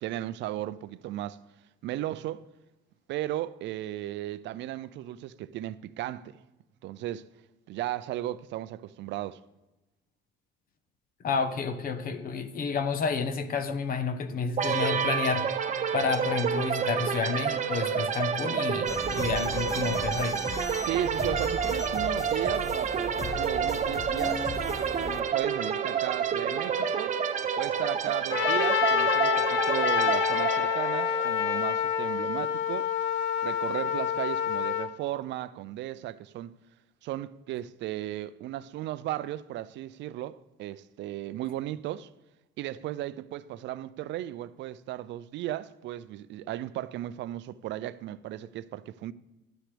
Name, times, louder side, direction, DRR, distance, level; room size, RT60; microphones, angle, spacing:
voice 1, 0.0-1.4 1.8-2.4 3.1-6.3 6.8-7.3 7.7-9.4 20.8-24.6 25.0-27.2 27.6-32.9 33.4-36.5 37.0-42.1 42.6-49.1, right 14 dB, 65° right, 0.4 m, -35 dB
voice 2, 11.2-15.5 15.9-20.4, left 5 dB, 45° left, 1.0 m, -30 dB
sound 1, 14.6-32.2, right 7 dB, 40° right, 0.7 m, -29 dB
sound 2, 18.9-25.2, left 3 dB, 15° left, 0.6 m, -37 dB
Trumpet, 28.3-34.9, left 9 dB, 75° left, 0.7 m, -27 dB
11.5 x 9.1 x 3.3 m
cardioid pair, 125°, 20 cm